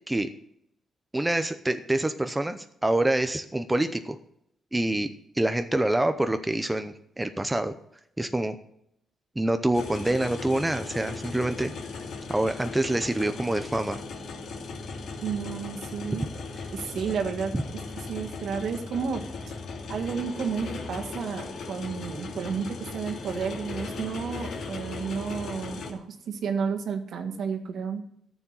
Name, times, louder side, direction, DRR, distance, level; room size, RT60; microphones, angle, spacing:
voice 1, 1.1-4.2 4.7-5.1 5.3-7.8 8.2-8.6 9.4-11.7 12.3-14.0, right 1 dB, 10° right, 8 dB, 0.7 m, -26 dB
sound 1, 9.7-25.9, left 4 dB, 65° left, 2.7 m, -37 dB
voice 2, 15.2-16.3 16.7-17.6 18.1-19.6 19.9-28.0, right 6 dB, 65° right, 4 dB, 1.8 m, -32 dB
13.5 x 7.1 x 7.5 m, 0.73 s
cardioid pair, 140°, 0 cm